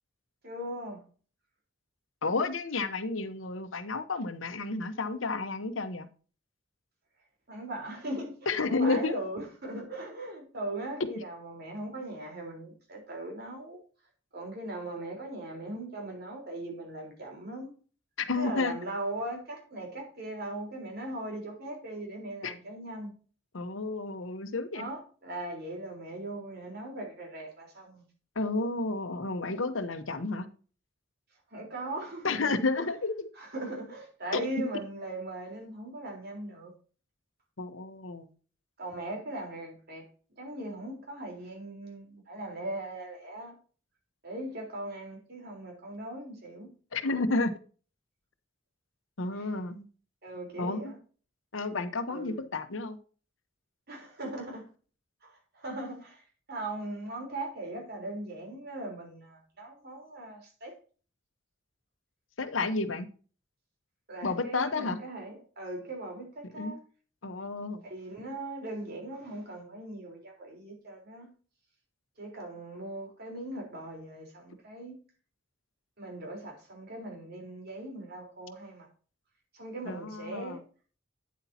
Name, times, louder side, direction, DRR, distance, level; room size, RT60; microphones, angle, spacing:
voice 1, 0.4-1.0 7.5-8.4 8.7-13.8 14.3-17.7 18.4-23.1 24.7-28.0 31.5-32.9 33.4-36.7 38.8-40.1 40.4-43.5 44.2-46.7 49.3-49.5 50.2-51.0 52.1-52.4 53.9-54.7 55.2-56.2 56.5-60.7 64.1-66.8 67.8-71.3 72.2-74.9 76.0-78.9 79.5-80.6, right 1 dB, 55° right, 4.0 m, -39 dB
voice 2, 2.2-6.1 8.5-9.2 11.0-11.1 18.2-18.7 22.4-22.5 23.5-24.9 28.4-30.5 32.2-33.3 34.3-34.4 37.6-38.3 46.9-47.5 49.2-49.9 50.6-50.9 51.5-53.0 62.4-63.1 64.2-65.0 66.6-66.7 67.2-67.8 79.9-80.6, left 3 dB, 85° left, 1.0 m, -31 dB
9.5 x 8.2 x 2.8 m
head